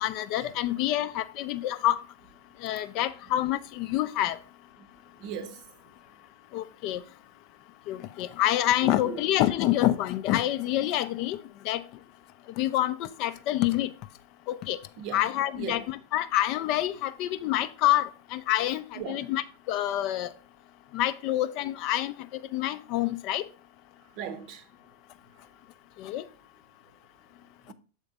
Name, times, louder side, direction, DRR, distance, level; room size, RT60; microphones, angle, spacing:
voice 1, 0.0-2.0 2.6-4.4 6.5-7.0 7.9-11.4 11.7-11.8 12.6-13.9 14.5-14.8 15.1-20.3 20.9-22.1 22.5-23.4 26.0-26.2, left 13 dB, 40° left, 0.4 m, -27 dB
voice 2, 5.2-5.6 8.8-9.2 15.0-15.3 15.5-15.9 19.0-19.3 24.2-24.6 27.7-27.8, right 8 dB, 40° right, 0.7 m, -38 dB
6.7 x 4.4 x 3.9 m
figure-of-eight pair, 90°, 0 cm